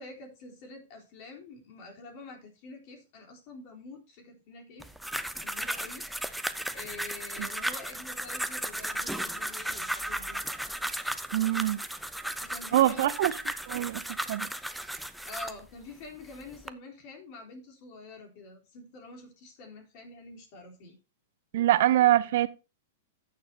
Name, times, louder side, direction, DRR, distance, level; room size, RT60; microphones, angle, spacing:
voice 1, 0.0-4.9 5.4-10.4 12.4-13.4 15.3-21.0, left 3 dB, 50° left, 3.7 m, -47 dB
sound 1, 4.8-15.6 16.2-16.7, right 1 dB, ahead, 0.7 m, -35 dB
voice 2, 11.3-11.8 12.7-13.3 13.7-14.5 21.5-22.5, right 14 dB, 60° right, 0.7 m, -24 dB
15.0 x 6.8 x 2.8 m
hypercardioid pair, 105°, 0 cm